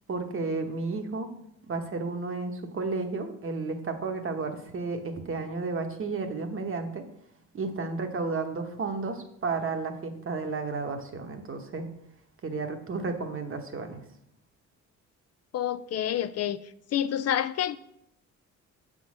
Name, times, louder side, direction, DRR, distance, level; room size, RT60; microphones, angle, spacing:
voice 1, 0.1-1.3 1.7-7.0 7.5-11.9 12.4-14.0, right 3 dB, 45° right, 1.2 m, -32 dB
voice 2, 15.5-16.6 16.9-17.8, left 10 dB, 55° left, 0.5 m, -28 dB
7.0 x 3.8 x 6.3 m
cardioid pair, 90°, 30 cm